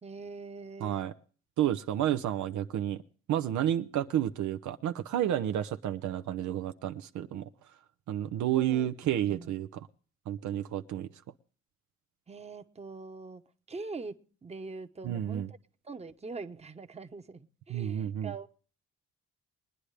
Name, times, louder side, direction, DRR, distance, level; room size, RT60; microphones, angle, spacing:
voice 1, 0.0-1.1 8.5-8.9 9.2-9.5 12.3-13.4 13.7-14.1 14.4-15.6 15.8-18.5, right 4 dB, 20° right, 7 dB, 1.0 m, -43 dB
voice 2, 0.8-1.1 1.6-3.0 3.3-7.5 8.1-9.9 10.3-11.1 15.0-15.5 17.7-18.3, right 11 dB, 75° right, 9 dB, 0.7 m, -31 dB
21.5 x 10.0 x 3.3 m, 0.40 s
cardioid pair, 90°, 30 cm